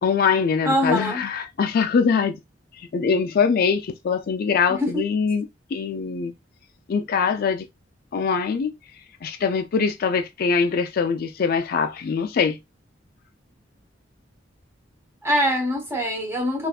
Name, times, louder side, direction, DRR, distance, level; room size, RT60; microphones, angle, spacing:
voice 1, 0.0-2.4 2.8-5.5 5.7-6.3 6.9-7.7 8.1-8.7 9.2-12.6, left 5 dB, 50° left, 0.4 m, -23 dB
voice 2, 0.6-1.2 4.8-5.0 15.2-16.7, equal, 15° right, 1.0 m, -23 dB
3.4 x 2.4 x 2.3 m
head